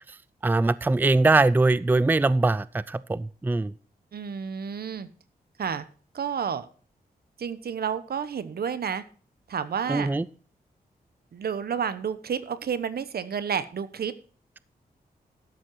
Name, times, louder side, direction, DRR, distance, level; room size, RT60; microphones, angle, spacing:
voice 1, 0.4-3.7 9.9-10.2, right 2 dB, 10° right, 18 dB, 0.4 m, -22 dB
voice 2, 4.1-5.1 5.6-5.8 6.1-6.7 7.4-9.0 9.5-10.1 11.3-14.1, right 7 dB, 75° right, 13 dB, 1.0 m, -30 dB
12.5 x 7.6 x 4.6 m, 0.41 s
cardioid pair, 85°, 16 cm